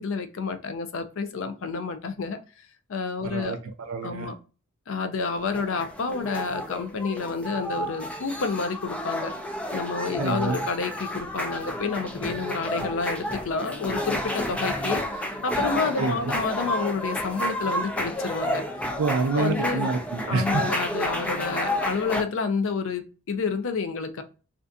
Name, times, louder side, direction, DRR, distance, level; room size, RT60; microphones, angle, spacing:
voice 1, 0.0-2.4 2.9-3.6 4.0-4.4 4.9-9.3 9.7-18.7 19.3-19.9 20.3-24.2, left 4 dB, 65° left, 0.5 m, -29 dB
voice 2, 3.2-4.3 10.2-10.6 16.0-16.4 19.0-20.6, right 4 dB, 75° right, 0.4 m, -27 dB
sound 1, 5.2-22.2, equal, 5° left, 0.4 m, -31 dB
2.5 x 2.5 x 2.2 m
head